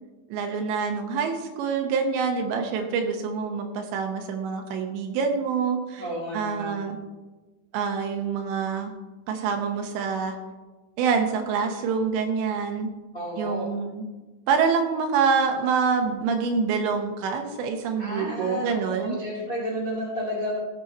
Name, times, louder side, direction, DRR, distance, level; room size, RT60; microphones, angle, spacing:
voice 1, 0.3-6.0 6.3-7.0 7.7-8.9 9.3-10.4 11.0-12.9 13.4-14.1 14.5-19.2, right 5 dB, 75° right, 4 dB, 2.8 m, -26 dB
voice 2, 6.0-6.9 13.1-13.7 18.0-20.6, equal, 80° left, -4 dB, 0.7 m, -31 dB
17.0 x 6.2 x 4.2 m, 1.2 s
omnidirectional pair, 6.0 m